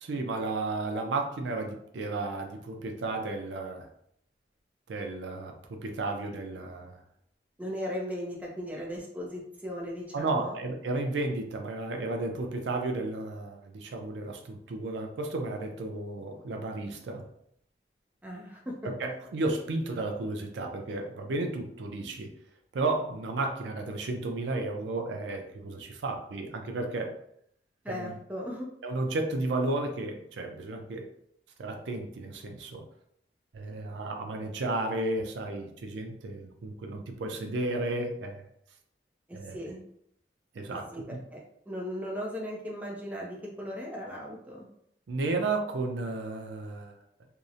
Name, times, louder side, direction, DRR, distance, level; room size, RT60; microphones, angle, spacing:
voice 1, 0.0-3.9 4.9-7.0 10.1-17.3 18.8-22.3 22.7-27.2 27.9-28.1 28.8-31.1 31.6-32.8 33.5-38.4 39.3-39.6 40.5-41.2 45.1-46.9, right 2 dB, 80° right, 3 dB, 0.4 m, -33 dB
voice 2, 7.6-10.6 18.2-18.7 27.8-28.7 39.3-39.8 40.7-41.4 41.7-44.7, equal, 10° right, -3 dB, 0.4 m, -37 dB
2.7 x 2.0 x 2.4 m, 0.70 s
head